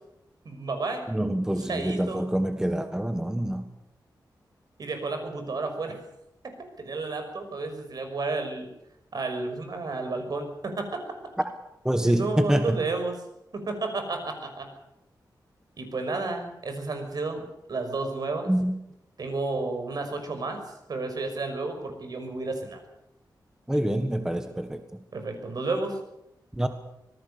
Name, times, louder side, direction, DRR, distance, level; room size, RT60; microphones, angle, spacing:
voice 1, 0.4-1.1 1.7-2.2 4.8-6.0 6.8-8.7 9.1-10.9 12.0-13.2 13.5-14.7 15.8-18.5 19.2-20.6 20.9-22.8 23.7-23.8 25.1-26.0, right 3 dB, 60° right, 6 dB, 5.9 m, -31 dB
voice 2, 1.1-3.7 11.8-12.8 18.5-18.8 23.7-25.0 26.5-26.7, right 1 dB, 10° right, 7 dB, 1.6 m, -26 dB
26.0 x 19.0 x 6.9 m, 0.85 s
wide cardioid pair, 140°, 8 cm